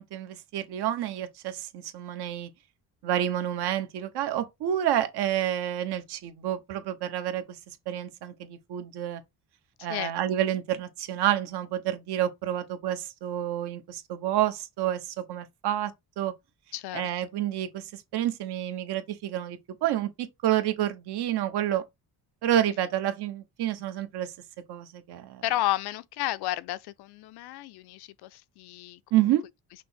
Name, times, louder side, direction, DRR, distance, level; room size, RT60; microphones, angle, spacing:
voice 1, 0.0-2.5 3.0-7.4 7.9-9.2 9.8-16.3 16.9-21.8 22.4-24.3 24.7-25.4 29.1-29.4, right 12 dB, 90° right, 1.0 m, -29 dB
voice 2, 25.4-29.0, left 15 dB, 80° left, 0.5 m, -32 dB
6.0 x 2.1 x 4.3 m
cardioid pair, 140°, 39 cm